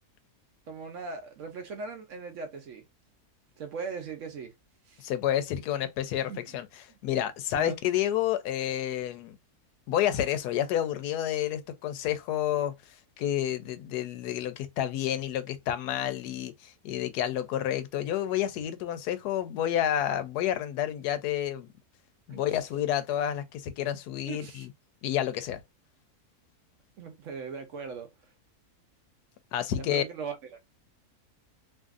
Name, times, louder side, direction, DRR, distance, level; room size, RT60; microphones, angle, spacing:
voice 1, 0.7-2.8 3.6-4.5 4.9-5.0 6.3-6.6 6.9-7.0 7.5-7.8 22.3-22.4 24.3-24.7 27.0-28.1 29.8-30.4, right 5 dB, 65° right, 0.8 m, -39 dB
voice 2, 5.0-6.7 7.0-9.4 9.9-12.7 13.2-21.7 22.3-24.7 25.0-25.6 29.5-30.0, left 11 dB, 90° left, 1.1 m, -29 dB
2.6 x 2.5 x 2.4 m
omnidirectional pair, 1.6 m